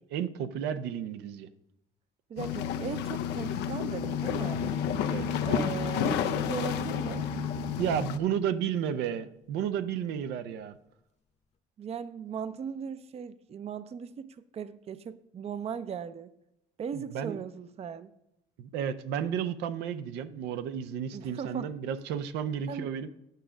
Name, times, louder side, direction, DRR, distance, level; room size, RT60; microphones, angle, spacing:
voice 1, 0.1-1.5 5.1-5.2 7.8-10.8 16.9-17.4 18.6-23.1, right 8 dB, 85° right, 11 dB, 0.6 m, -32 dB
voice 2, 2.3-4.7 5.4-7.3 11.8-16.3 16.8-18.1 21.1-21.7 22.7-22.9, right 7 dB, 35° right, 13 dB, 0.5 m, -38 dB
sound 1, 2.4-8.2, left 8 dB, 90° left, 0.6 m, -31 dB
sound 2, 3.9-8.9, left 4 dB, 40° left, 0.9 m, -38 dB
9.2 x 5.1 x 5.9 m, 0.82 s
cardioid pair, 110°, 17 cm